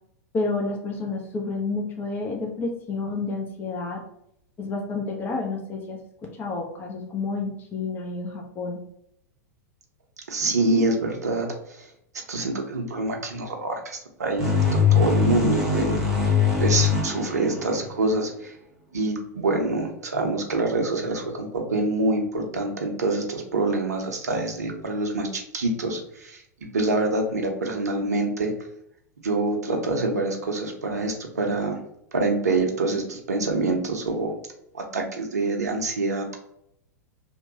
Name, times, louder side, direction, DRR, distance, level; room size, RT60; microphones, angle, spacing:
voice 1, 0.3-4.0 4.6-6.0 6.4-8.8, left 3 dB, 20° left, 1 dB, 0.4 m, -30 dB
voice 2, 10.3-11.9 12.3-16.0 16.2-16.3 16.6-18.5 18.9-26.4 26.7-28.5 29.2-31.8 32.1-34.3 34.7-36.4, right 2 dB, 70° right, 3 dB, 0.6 m, -26 dB
sound 1, 14.4-18.1, left 5 dB, 5° right, 0.9 m, -22 dB
2.9 x 2.1 x 2.7 m, 0.75 s
figure-of-eight pair, 95°, 9 cm